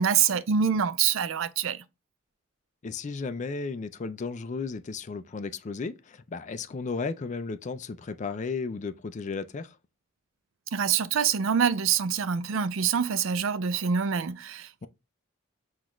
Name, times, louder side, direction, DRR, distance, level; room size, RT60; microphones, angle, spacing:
voice 1, 0.0-1.8 10.7-14.7, right 7 dB, 70° right, 0.4 m, -25 dB
voice 2, 2.8-9.8, left 4 dB, 35° left, 0.4 m, -34 dB
5.9 x 2.4 x 3.0 m
head